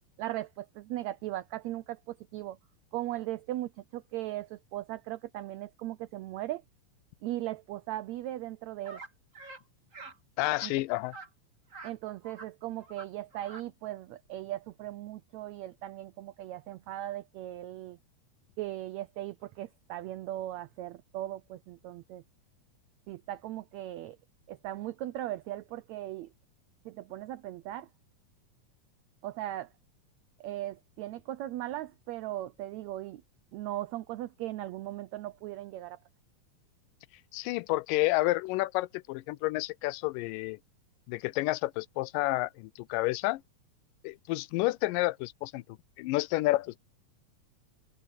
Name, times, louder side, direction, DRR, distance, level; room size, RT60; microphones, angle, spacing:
voice 1, 0.2-2.6 2.9-6.6 7.2-9.0 10.6-10.7 11.8-18.0 18.6-22.2 23.1-24.2 24.5-26.3 26.8-27.9 29.2-29.7 30.4-33.2 33.5-36.0, right 14 dB, 90° right, 1.5 m, -38 dB
sound 1, 8.8-9.1 9.3-9.6 9.9-10.2 10.5-10.7 11.1-11.3 11.7-11.9 12.2-12.5 12.8-13.1 13.3-13.6, right 3 dB, 25° right, 2.2 m, -46 dB
voice 2, 10.4-11.1 37.3-40.6 41.1-43.4 44.0-45.6 46.0-46.8, left 20 dB, 85° left, 2.1 m, -30 dB
open air
omnidirectional pair, 3.9 m